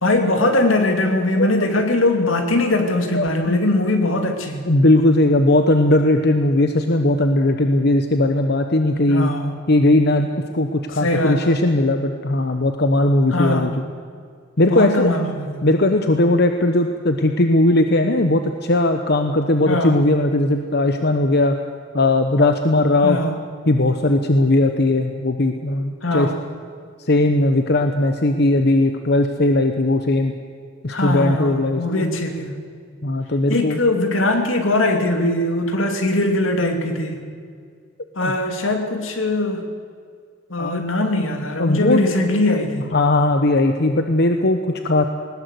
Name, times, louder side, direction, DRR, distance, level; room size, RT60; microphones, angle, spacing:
voice 1, 0.0-4.6 9.1-9.5 11.0-11.6 13.3-13.8 14.7-15.7 19.6-19.9 23.0-23.4 26.0-26.4 30.9-32.6 33.5-37.2 38.2-39.6 40.5-42.9, left 2 dB, 80° left, 5 dB, 2.6 m, -21 dB
voice 2, 1.3-1.7 3.1-3.6 4.7-9.3 9.7-13.8 14.6-15.1 15.6-21.6 21.9-23.2 23.7-26.3 27.0-30.3 30.8-32.2 33.0-33.8 38.2-38.3 40.6-40.8 41.6-42.0 42.9-45.1, left 2 dB, 55° left, 6 dB, 1.1 m, -18 dB
20.5 x 19.5 x 8.2 m, 2.1 s
head